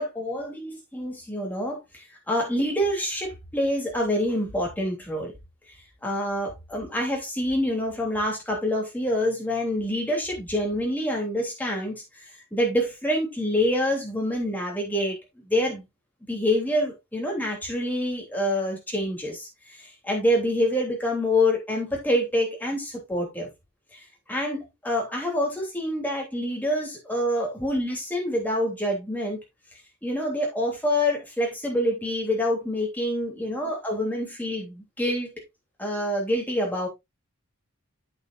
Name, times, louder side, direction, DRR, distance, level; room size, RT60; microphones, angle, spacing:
voice 1, 0.0-5.3 6.0-11.9 12.5-15.2 15.4-15.9 16.3-23.5 23.9-24.0 24.3-29.4 30.0-35.3 35.8-36.9, left 1 dB, 10° left, 3.2 m, -26 dB
8.7 x 8.2 x 2.6 m
head